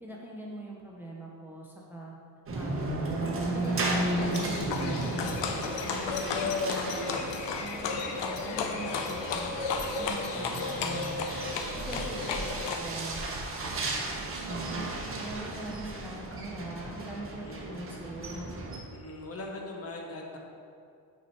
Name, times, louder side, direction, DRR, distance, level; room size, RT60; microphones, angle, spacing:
voice 1, 0.0-2.1 2.5-2.9 3.5-5.7 6.3-7.2 7.5-9.5 9.9-11.3 11.8-14.0 14.5-14.9 15.2-18.5, right 1 dB, 5° right, -2 dB, 0.5 m, -42 dB
sound 1, 2.5-18.8, right 2 dB, 30° right, 0.8 m, -35 dB
Livestock farm animals working animals, 3.7-12.8, left 4 dB, 90° left, 0.7 m, -33 dB
voice 2, 14.5-15.2 17.4-17.9 18.9-20.4, left 2 dB, 35° left, 1 dB, 0.8 m, -42 dB
5.7 x 4.4 x 4.4 m, 2.4 s
cardioid pair, 125°, 42 cm